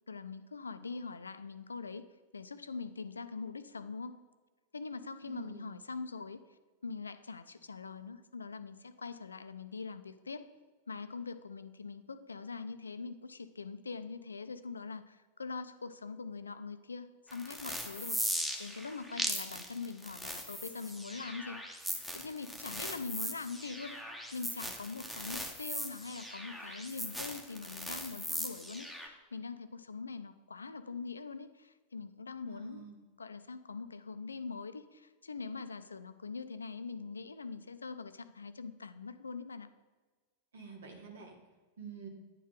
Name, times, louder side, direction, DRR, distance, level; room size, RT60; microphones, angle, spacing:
voice 1, 0.1-2.1 2.3-4.2 4.7-6.4 6.8-10.5 10.9-21.6 22.1-24.0 24.3-32.9 33.2-39.7, left 4 dB, 75° left, 12 dB, 0.4 m, -43 dB
voice 2, 5.2-5.7 32.5-33.0 40.5-41.4 41.8-42.1, right 5 dB, 65° right, 2 dB, 1.6 m, -48 dB
sound 1, 17.3-29.1, equal, ahead, 1.0 m, -39 dB
9.9 x 4.4 x 3.8 m, 1.3 s
figure-of-eight pair, 90°, 0 cm